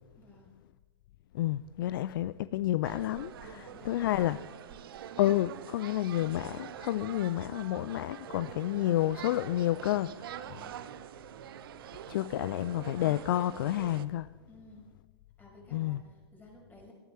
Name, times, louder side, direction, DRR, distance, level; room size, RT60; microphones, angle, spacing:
voice 1, 0.1-0.6 3.3-5.1 10.5-10.8 14.4-15.0 15.4-16.9, left 1 dB, 10° left, 5.4 m, -56 dB
voice 2, 1.3-4.4 5.2-10.4 12.1-14.3 15.7-16.0, left 14 dB, 50° left, 0.4 m, -30 dB
sound 1, 2.8-14.1, right 10 dB, 55° right, 0.7 m, -45 dB
18.0 x 13.5 x 4.4 m
figure-of-eight pair, 105°, 14 cm